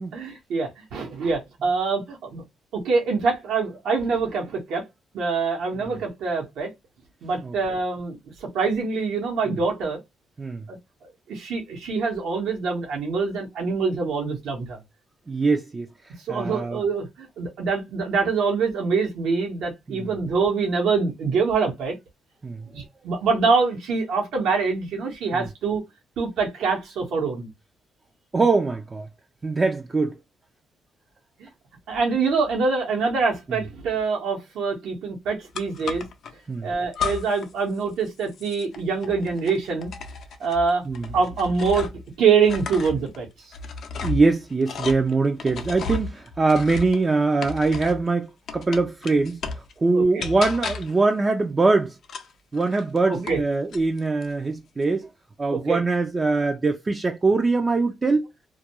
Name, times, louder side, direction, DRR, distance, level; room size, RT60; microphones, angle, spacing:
voice 1, 0.1-2.4 2.8-4.8 5.1-6.7 7.2-10.0 10.7-10.8 11.3-14.8 16.2-21.9 22.7-25.8 26.2-27.5 31.4-31.5 31.9-36.0 36.6-39.9 40.4-40.8 41.1-41.9 42.2-43.3 49.9-50.2 53.1-53.4 55.5-55.8, right 4 dB, 85° right, 0.9 m, -25 dB
voice 2, 15.3-16.8 19.9-20.1 22.4-22.7 25.3-25.5 28.3-29.1 29.4-30.1 33.5-33.6 36.5-36.7 40.9-41.1 44.0-49.4 49.8-52.0 52.5-55.1 55.4-58.3, right 3 dB, 30° right, 0.4 m, -23 dB
sound 1, 35.5-36.3 36.9-37.5 37.8-42.1 42.4-48.1 48.5-49.7 50.2-51.0 52.0-53.4 53.7-54.3, left 4 dB, 65° left, 0.5 m, -34 dB
2.3 x 2.2 x 2.8 m
cardioid pair, 90°, 0 cm